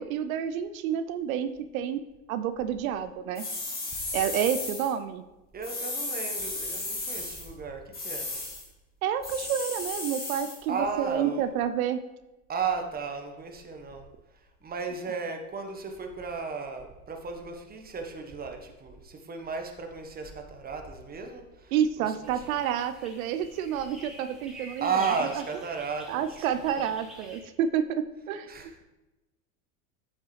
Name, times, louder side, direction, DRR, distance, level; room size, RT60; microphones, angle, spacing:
voice 1, 0.0-2.0 2.3-3.5 4.1-5.2 9.0-12.0 21.7-24.9 26.1-28.5, right 9 dB, 85° right, 11 dB, 0.5 m, -29 dB
sound 1, 3.4-4.9 5.6-7.5 7.9-8.6 9.2-10.6, left 2 dB, 20° left, 2.2 m, -34 dB
voice 2, 5.5-8.3 10.7-11.4 12.5-14.0 14.6-22.4 24.8-26.5 28.5-28.8, right 5 dB, 20° right, 4 dB, 1.1 m, -34 dB
sound 2, 22.2-27.4, right 1 dB, ahead, 2.1 m, -48 dB
8.0 x 6.5 x 3.2 m, 1.0 s
hypercardioid pair, 100°, 40 cm